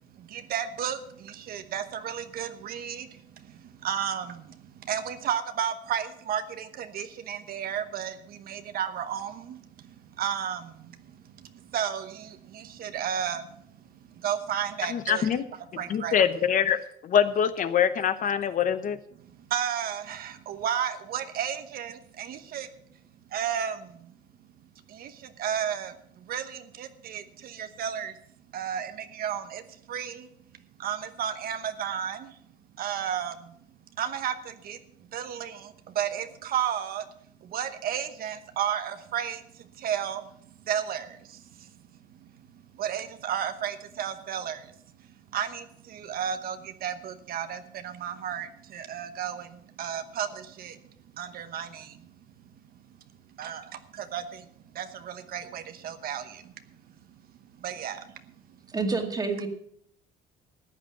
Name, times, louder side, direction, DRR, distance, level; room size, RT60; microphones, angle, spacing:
voice 1, 0.2-13.6 14.2-15.3 15.8-16.2 19.2-22.7 23.3-24.1 24.9-28.2 28.5-30.3 30.8-32.4 32.8-33.5 34.0-34.8 35.1-37.0 37.4-40.3 40.6-41.7 42.2-44.7 45.3-50.8 51.1-52.1 53.4-54.5 54.7-56.5 57.6-58.1, right 9 dB, 60° right, 9 dB, 1.0 m, -33 dB
voice 2, 14.9-15.4 15.9-16.8 17.0-19.0, left 8 dB, 50° left, 12 dB, 0.9 m, -24 dB
voice 3, 58.7-59.5, right 3 dB, 20° right, 5 dB, 2.0 m, -28 dB
14.0 x 8.8 x 5.8 m, 0.68 s
cardioid pair, 110°, 17 cm